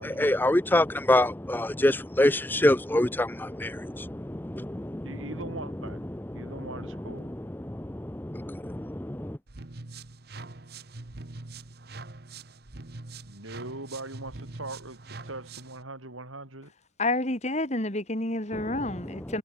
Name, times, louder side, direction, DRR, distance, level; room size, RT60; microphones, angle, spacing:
voice 1, 0.0-5.3 6.1-9.4 18.5-18.6, left 1 dB, 10° left, 0.6 m, -27 dB
voice 2, 5.0-6.1 6.3-7.3 13.2-16.7, right 2 dB, 90° right, 6.6 m, -41 dB
sound 1, 9.5-15.8, right 3 dB, 50° right, 1.2 m, -43 dB
voice 3, 17.0-19.4, left 2 dB, 35° left, 3.3 m, -29 dB
head